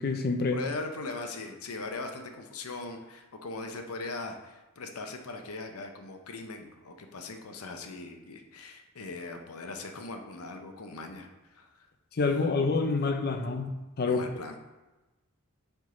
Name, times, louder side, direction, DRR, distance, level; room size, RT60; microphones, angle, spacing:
voice 1, 0.0-0.6 12.1-14.3, left 3 dB, 45° left, 6 dB, 0.5 m, -27 dB
voice 2, 0.5-11.9 14.1-14.6, left 3 dB, 85° left, 5 dB, 0.7 m, -40 dB
9.3 x 3.7 x 3.8 m, 1.1 s
head